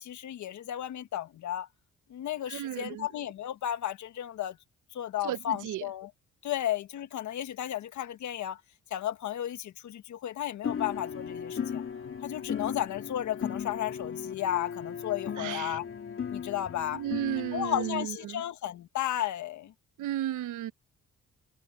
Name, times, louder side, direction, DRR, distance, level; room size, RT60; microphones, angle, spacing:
voice 1, 0.0-1.7 2.1-4.6 4.9-6.1 6.4-8.6 8.9-11.8 12.2-15.8 16.3-17.0 17.5-19.7, left 12 dB, 70° left, 1.5 m, -33 dB
voice 2, 2.5-3.1 5.2-5.9 15.4-15.8 16.9-18.4 20.0-20.7, right 12 dB, 85° right, 1.2 m, -34 dB
sound 1, 10.6-18.0, left 7 dB, 45° left, 2.2 m, -36 dB
cardioid pair, 90°, 30 cm